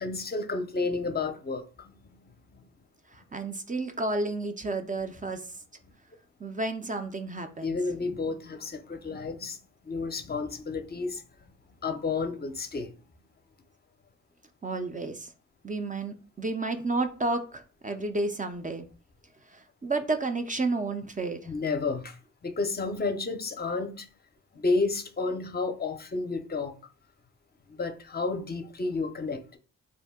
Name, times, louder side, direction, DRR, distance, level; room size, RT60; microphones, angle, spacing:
voice 1, 0.0-1.9 2.5-2.6 7.6-9.6 9.9-11.2 11.8-12.9 21.5-22.2 22.4-24.1 24.5-26.7 27.7-29.6, left 3 dB, 30° left, 0.5 m, -31 dB
voice 2, 3.1-5.4 6.4-7.8 14.6-15.3 15.6-18.9 19.5-21.5, right 2 dB, 25° right, 0.4 m, -31 dB
2.6 x 2.1 x 3.4 m
cardioid pair, 60°, 33 cm